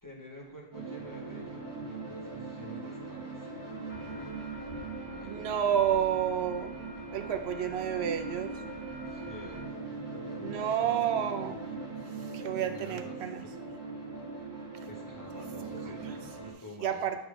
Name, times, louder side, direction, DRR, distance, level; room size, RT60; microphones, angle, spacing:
voice 1, 0.0-3.5 5.1-6.0 9.0-9.9 10.8-11.1 12.6-13.6 14.3-14.5 14.8-17.1, equal, 20° left, -2 dB, 1.2 m, -50 dB
sound 1, 0.7-16.5, right 3 dB, 30° right, 1.6 m, -40 dB
sound 2, 3.9-9.6, left 2 dB, 75° left, 1.5 m, -49 dB
voice 2, 5.2-6.7 7.1-8.5 10.4-11.7 12.3-13.4 16.1-16.2 16.8-17.2, right 9 dB, 80° right, 7 dB, 0.9 m, -30 dB
8.8 x 3.1 x 5.0 m, 0.90 s
omnidirectional pair, 1.1 m